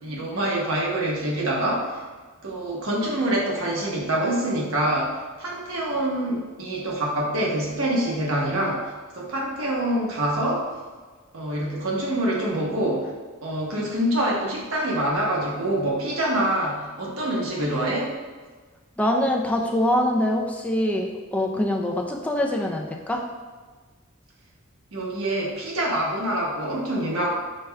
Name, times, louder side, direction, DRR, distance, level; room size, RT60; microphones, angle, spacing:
voice 1, 0.0-2.0 2.4-8.8 9.1-10.6 11.3-13.1 13.4-18.1 22.6-22.7 24.9-27.3, right 1 dB, 80° right, -3 dB, 0.9 m, -25 dB
voice 2, 19.0-23.2, left 1 dB, 5° left, 0 dB, 0.4 m, -24 dB
6.2 x 2.2 x 3.4 m, 1.4 s
head